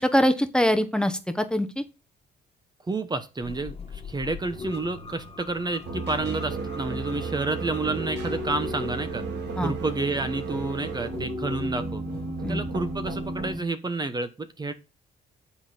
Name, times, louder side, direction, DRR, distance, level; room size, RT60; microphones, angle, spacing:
voice 1, 0.0-1.8 9.6-9.7 12.4-12.6, equal, 5° left, 9 dB, 1.1 m, -23 dB
voice 2, 2.9-9.2 9.6-12.0 12.5-14.7, right 3 dB, 25° right, 10 dB, 1.0 m, -30 dB
sound 1, 3.4-13.6, left 3 dB, 30° left, 1.6 m, -39 dB
sound 2, 5.8-13.5, right 4 dB, 70° right, 3.0 m, -34 dB
9.8 x 4.0 x 6.6 m, 0.29 s
cardioid pair, 90°, 18 cm